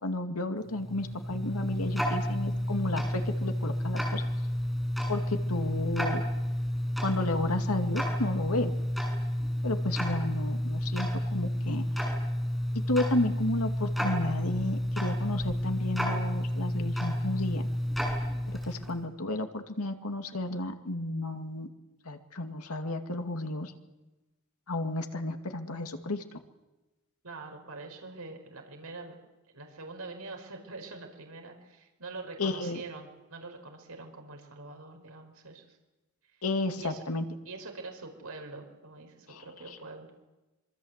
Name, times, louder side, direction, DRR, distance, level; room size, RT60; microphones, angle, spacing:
voice 1, 0.0-4.2 5.1-6.3 7.0-8.7 9.6-12.1 12.9-17.6 18.5-21.7 22.0-23.7 24.7-26.4 32.4-32.8 36.4-37.3 39.3-39.8, left 2 dB, 90° left, 5 dB, 2.3 m, -32 dB
Tick-tock, 0.7-19.0, equal, ahead, 7.2 m, -31 dB
voice 2, 27.2-29.2 29.5-35.8 36.8-37.0 37.4-40.1, right 3 dB, 90° right, 3 dB, 5.1 m, -44 dB
26.5 x 24.0 x 8.2 m, 1.1 s
head